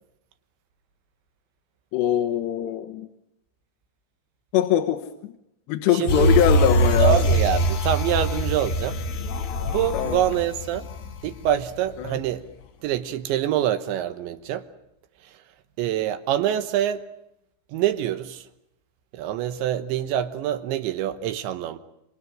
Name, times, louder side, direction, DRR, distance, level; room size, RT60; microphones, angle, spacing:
voice 1, 1.9-3.1 4.5-5.4 5.7-7.2 9.9-10.2 12.0-12.2, left 10 dB, 70° left, 3.3 m, -22 dB
voice 2, 5.9-6.3 7.0-9.0 9.6-10.9 11.2-12.5 12.8-14.6 15.2-15.3 15.8-17.0 17.7-18.5 19.1-21.8, right 10 dB, 75° right, 3.4 m, -25 dB
sound 1, 6.1-11.7 12.1-12.2, equal, 90° left, 5.8 m, -23 dB
27.5 x 26.5 x 6.4 m
omnidirectional pair, 5.5 m